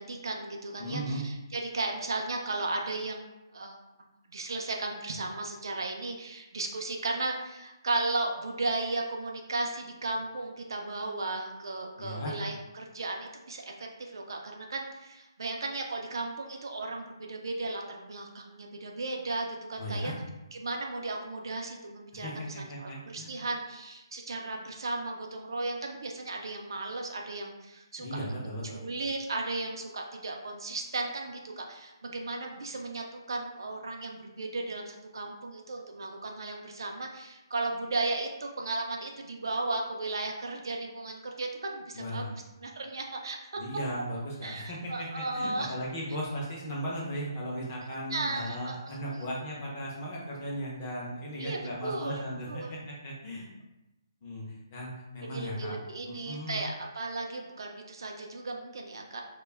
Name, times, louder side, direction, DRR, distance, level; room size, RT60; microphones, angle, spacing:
voice 1, 0.0-3.2 3.5-3.8 4.3-20.1 20.5-22.5 22.8-28.2 28.7-42.3 42.6-43.4 44.4-45.7 48.1-48.8 51.4-52.2 52.5-52.8 55.3-59.2, right 2 dB, 60° right, 2 dB, 0.4 m, -35 dB
voice 2, 0.8-1.2 12.0-12.4 19.8-20.2 22.1-23.3 28.0-28.8 41.9-42.3 43.6-53.5 54.2-55.8 56.0-56.6, equal, 20° left, -4 dB, 0.5 m, -37 dB
2.2 x 2.0 x 3.2 m, 0.98 s
hypercardioid pair, 175°, 2 cm